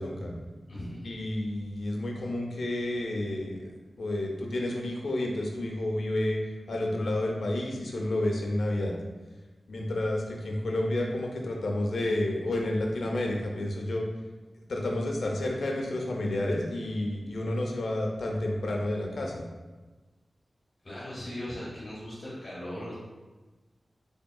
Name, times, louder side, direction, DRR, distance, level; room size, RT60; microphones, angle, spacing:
voice 1, 0.2-1.1 20.8-22.9, left 1 dB, 40° left, -7 dB, 1.1 m, -39 dB
voice 2, 1.0-3.7 4.0-6.4 6.7-8.9 9.7-14.0 14.7-19.4, left 1 dB, 80° left, 0 dB, 0.6 m, -30 dB
3.6 x 3.5 x 2.3 m, 1.2 s
wide cardioid pair, 120°, 0 cm